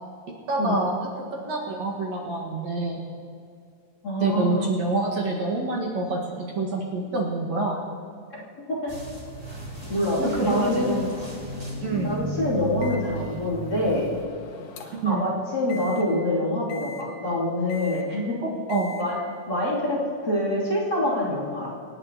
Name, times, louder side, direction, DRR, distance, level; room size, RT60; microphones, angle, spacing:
voice 1, 0.5-1.0 1.3-3.0 4.2-7.8 10.2-11.1 11.8-12.2 14.9-15.2 18.7-19.0, right 3 dB, 60° right, -3 dB, 2.7 m, -27 dB
voice 2, 4.0-4.7 8.3-8.4 8.7-8.9 9.9-11.1 12.0-14.1 14.8-18.3 19.0-19.2 19.5-20.0 20.2-21.7, left 1 dB, 30° left, -9 dB, 3.2 m, -26 dB
sound 1, 8.9-14.3, right 1 dB, 10° right, 1.4 m, -35 dB
Microwave oven, 12.8-15.1 15.7-16.0 16.7-17.0 17.7-18.1 18.7-19.0, left 5 dB, 70° left, 2.3 m, -42 dB
27.0 x 9.8 x 2.9 m, 2.4 s
omnidirectional pair, 3.7 m